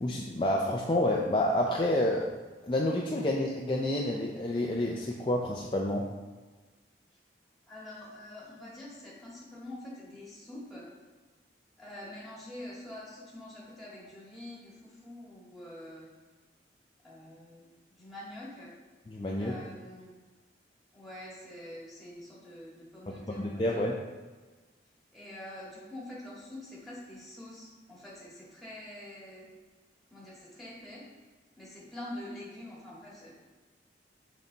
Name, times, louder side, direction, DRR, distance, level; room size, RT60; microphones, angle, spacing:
voice 1, 0.0-2.3 2.6-6.1 19.1-19.5 23.3-24.0, left 1 dB, 25° left, -2 dB, 0.4 m, -29 dB
voice 2, 7.7-10.9 11.8-16.1 17.0-17.6 18.0-18.7 19.4-20.1 20.9-24.0 25.1-29.4 30.1-31.0 31.5-33.3, left 1 dB, ahead, -7 dB, 1.9 m, -46 dB
6.4 x 4.2 x 3.9 m, 1.3 s
head